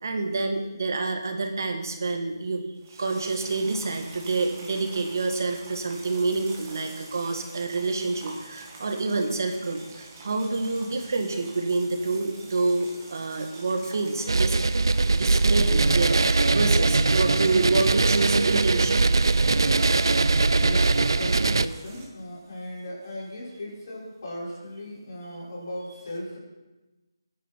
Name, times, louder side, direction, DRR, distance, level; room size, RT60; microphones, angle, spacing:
voice 1, 0.0-2.6 2.9-14.6 15.0-19.2 20.6-20.7, right 3 dB, 50° right, 4 dB, 1.6 m, -27 dB
sound 1, 2.8-22.0, right 3 dB, 20° right, 1.9 m, -46 dB
sound 2, 14.3-21.6, right 3 dB, 70° right, 0.5 m, -21 dB
voice 2, 20.6-26.4, left 1 dB, 50° left, -5 dB, 5.6 m, -37 dB
17.5 x 10.0 x 4.5 m, 1.1 s
figure-of-eight pair, 170°, 2 cm